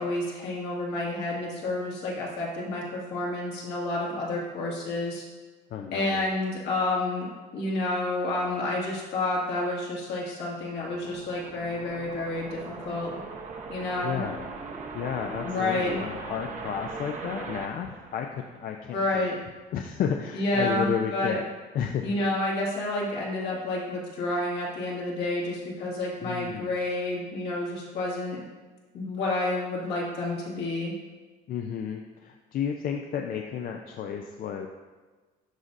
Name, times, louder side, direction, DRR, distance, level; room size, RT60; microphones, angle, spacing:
voice 1, 0.0-5.2 5.9-7.3 7.5-13.2 13.7-14.2 15.4-16.0 18.9-19.4 20.3-21.3 22.0-28.4 28.9-30.9, left 2 dB, 80° left, -4 dB, 2.1 m, -29 dB
voice 2, 5.7-6.4 14.0-14.5 14.9-19.3 19.7-21.5 21.7-22.0 26.2-26.7 31.5-34.7, left 8 dB, 60° left, 3 dB, 0.5 m, -32 dB
sound 1, 10.5-18.8, right 4 dB, 45° right, 0.8 m, -40 dB
11.0 x 4.0 x 2.5 m, 1.3 s
cardioid pair, 110°, 17 cm